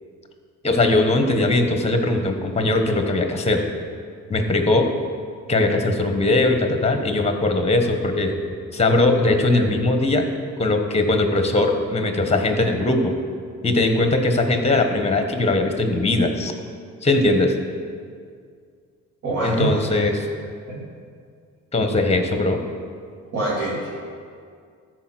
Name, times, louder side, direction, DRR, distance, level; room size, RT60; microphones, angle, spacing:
voice 1, 0.6-3.6 4.3-4.9 5.5-8.3 8.7-10.3 10.6-13.1 13.6-16.5 17.0-17.5 19.4-20.3 21.7-22.6, left 2 dB, 20° left, 5 dB, 1.3 m, -20 dB
voice 2, 19.2-19.8 23.3-23.9, right 2 dB, 55° right, -8 dB, 2.8 m, -24 dB
13.5 x 4.7 x 6.2 m, 2.2 s
cardioid pair, 90°, 30 cm